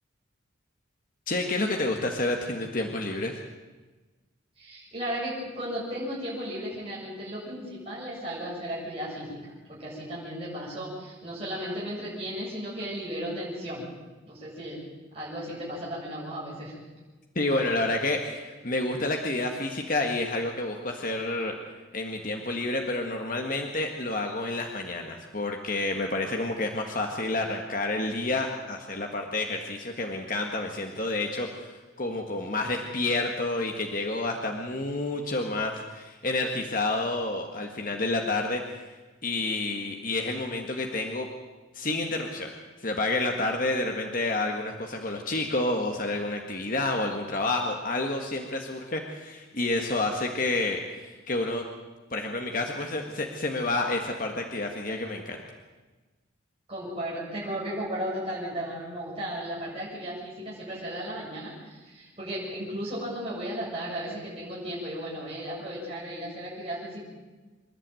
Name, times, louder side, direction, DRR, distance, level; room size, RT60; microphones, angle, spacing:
voice 1, 1.3-3.4 17.3-21.5 21.9-39.0 39.2-41.3 41.7-42.5 42.8-51.6 52.1-55.4, left 2 dB, 40° left, 2 dB, 1.7 m, -29 dB
voice 2, 4.6-13.9 14.3-14.8 15.1-16.7 56.7-67.0, equal, 30° right, -7 dB, 7.7 m, -35 dB
26.5 x 11.5 x 9.2 m, 1.2 s
head